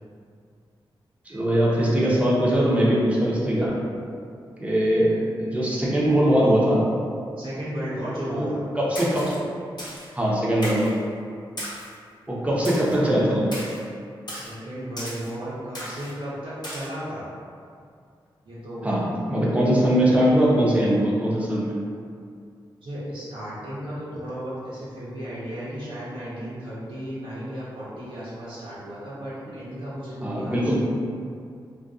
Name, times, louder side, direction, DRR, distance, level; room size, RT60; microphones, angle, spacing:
voice 1, 1.3-3.8 4.6-6.9 8.3-8.5 8.8-9.4 10.1-10.9 12.3-13.5 18.8-21.8 30.2-30.7, equal, 15° right, -6 dB, 0.6 m, -21 dB
voice 2, 7.4-8.6 12.5-12.6 14.3-17.3 18.4-18.9 22.8-30.7, equal, 70° right, -10 dB, 0.7 m, -34 dB
Splash splatter, 8.9-9.4 9.8-10.1 10.6-10.9 11.6-11.9 12.6-13.0 13.5-13.8 14.3-14.5 15.0-15.3 15.7-16.1 16.6-16.9, equal, 50° left, 0.8 m, -35 dB
2.5 x 2.2 x 2.3 m, 2.3 s
cardioid pair, 50°, 9 cm